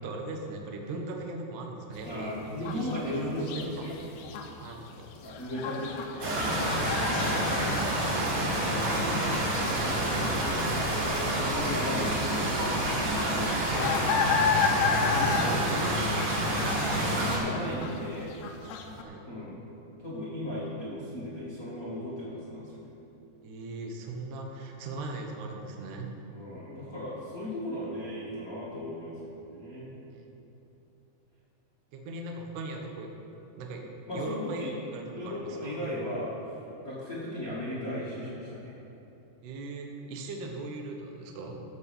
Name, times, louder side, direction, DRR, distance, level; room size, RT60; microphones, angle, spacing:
voice 1, 0.0-3.9 4.6-5.0 8.6-9.1 13.6-14.7 19.0-19.2 23.4-26.2 30.1-30.2 31.9-33.1 33.6-33.8 34.1-35.9 39.4-41.5, right 2 dB, 70° right, 1 dB, 2.0 m, -39 dB
sound 1, 2.0-19.0, left 6 dB, 75° left, 2.5 m, -33 dB
voice 2, 2.0-3.9 5.2-6.7 7.1-8.1 9.8-10.4 11.2-13.6 14.0-14.1 14.4-15.9 16.7-18.3 19.2-19.6 20.0-22.9 26.3-29.9 34.1-34.7 35.1-38.7, left 1 dB, 40° left, -9 dB, 1.2 m, -37 dB
sound 2, 6.2-17.4, right 1 dB, 85° right, 4.8 m, -28 dB
15.0 x 5.3 x 7.0 m, 2.9 s
omnidirectional pair, 4.9 m